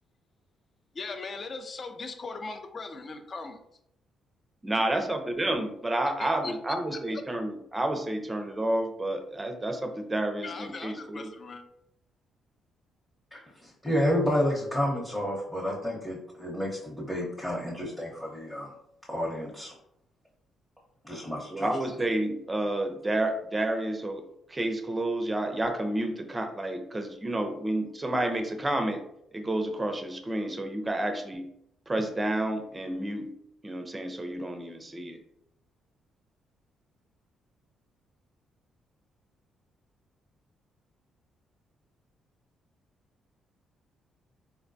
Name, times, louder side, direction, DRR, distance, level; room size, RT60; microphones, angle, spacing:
voice 1, 0.9-3.6 6.2-6.5 7.1-7.2 10.4-11.6, left 3 dB, 40° left, 7 dB, 0.5 m, -39 dB
voice 2, 4.6-11.3 21.5-29.0 29.3-31.5 31.9-33.3 33.6-35.2, right 1 dB, 20° right, 6 dB, 0.5 m, -30 dB
voice 3, 13.3-18.7 19.1-19.8 21.0-21.7, equal, 5° left, -5 dB, 0.8 m, -30 dB
4.2 x 2.1 x 2.6 m, 0.76 s
cardioid pair, 90°, 0 cm